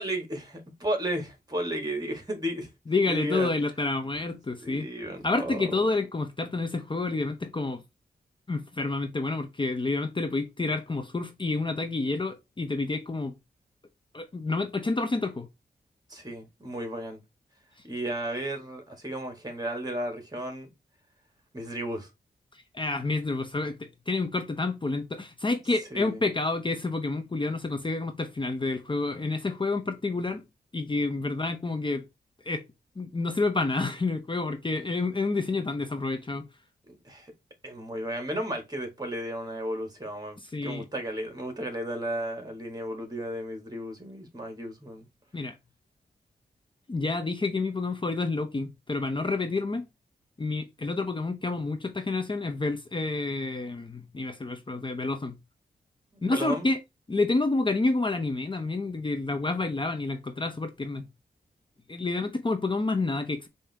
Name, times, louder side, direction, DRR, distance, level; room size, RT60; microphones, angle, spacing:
voice 1, 0.0-2.7 3.1-3.5 4.6-5.6 16.1-17.2 17.8-20.7 21.5-22.1 25.9-26.2 36.9-37.3 37.6-45.1 56.2-56.7, right 1 dB, 20° right, 1.7 m, -34 dB
voice 2, 2.9-4.9 5.2-7.8 8.5-13.3 14.1-15.5 22.5-30.4 30.7-32.0 32.4-32.6 33.0-36.4 40.4-40.8 45.3-45.5 46.9-49.8 50.4-55.3 56.2-56.8 57.1-61.1 61.9-63.5, left 3 dB, 30° left, 0.6 m, -29 dB
5.0 x 2.7 x 3.4 m
cardioid pair, 50°, 17 cm